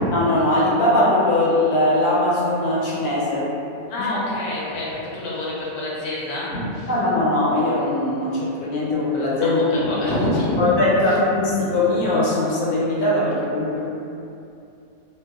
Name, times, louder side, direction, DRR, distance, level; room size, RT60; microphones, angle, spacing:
voice 1, 0.1-3.5 4.0-4.1 6.9-9.8 10.6-13.8, left 1 dB, 80° left, -6 dB, 1.1 m, -20 dB
voice 2, 3.9-6.9 9.4-10.6, left 1 dB, 65° left, -6 dB, 0.8 m, -27 dB
2.9 x 2.1 x 2.2 m, 2.7 s
omnidirectional pair, 1.6 m